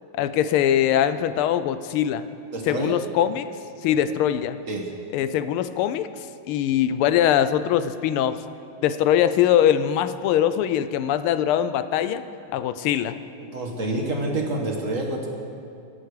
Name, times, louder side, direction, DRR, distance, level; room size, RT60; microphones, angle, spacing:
voice 1, 0.1-2.2 2.7-3.5 3.8-4.6 5.1-6.1 6.5-8.4 8.8-12.2 12.5-13.2, left 10 dB, 90° left, 12 dB, 1.5 m, -22 dB
voice 2, 2.5-3.0 4.7-5.0 13.4-15.3, right 2 dB, 45° right, 1 dB, 1.4 m, -28 dB
24.0 x 8.2 x 4.8 m, 2.5 s
omnidirectional pair, 2.3 m